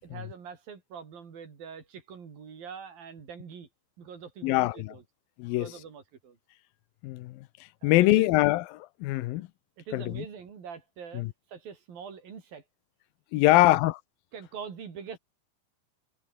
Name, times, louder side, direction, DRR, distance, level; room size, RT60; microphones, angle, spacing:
voice 1, 0.0-3.7 4.0-5.0 5.5-6.4 7.8-8.3 9.8-12.6 13.5-13.7 14.3-15.2, right 6 dB, 85° right, 5.7 m, -43 dB
voice 2, 4.4-4.9 5.4-5.7 7.0-7.4 7.8-9.5 9.9-10.3 11.1-11.3 13.3-13.9, left 18 dB, 90° left, 2.6 m, -23 dB
omnidirectional pair, 4.0 m